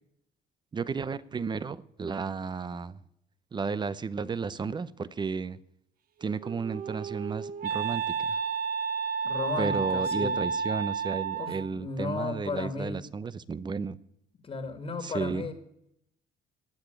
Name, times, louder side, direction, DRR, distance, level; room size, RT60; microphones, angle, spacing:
voice 1, 0.7-3.0 3.5-5.6 6.2-8.4 9.6-14.0 15.0-15.4, right 5 dB, 25° right, 17 dB, 0.7 m, -33 dB
Wind instrument woodwind instrument, 6.2-11.7, right 6 dB, 60° right, 0.9 m, -31 dB
voice 2, 9.2-10.4 11.4-13.0 14.4-15.5, left 4 dB, 35° left, 7 dB, 2.0 m, -34 dB
18.0 x 6.8 x 8.9 m, 0.77 s
cardioid pair, 110°, 17 cm